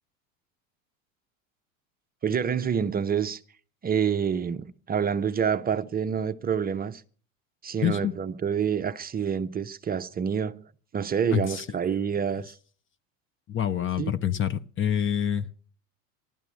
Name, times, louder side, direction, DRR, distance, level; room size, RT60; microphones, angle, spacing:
voice 1, 2.2-3.4 3.8-7.0 7.6-10.7 10.9-12.6 14.0-14.1, right 7 dB, 20° right, 0.7 m, -27 dB
voice 2, 7.8-8.1 11.3-11.6 13.5-15.5, left 10 dB, 30° left, 0.8 m, -26 dB
14.5 x 12.5 x 6.3 m
hypercardioid pair, 95°, 40 cm